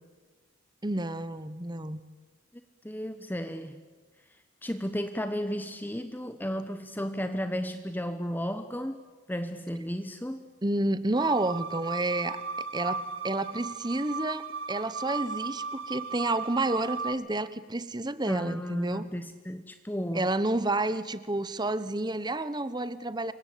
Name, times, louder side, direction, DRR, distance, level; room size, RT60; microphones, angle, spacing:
voice 1, 0.8-2.0 10.6-19.0 20.1-23.3, right 2 dB, 20° right, 14 dB, 1.1 m, -30 dB
voice 2, 2.8-3.8 4.6-9.0 9.3-10.5 18.3-20.3, equal, 10° left, 9 dB, 1.0 m, -34 dB
sound 1, 11.2-17.1, right 5 dB, 70° right, 2.4 m, -36 dB
28.5 x 24.0 x 8.6 m, 1.3 s
head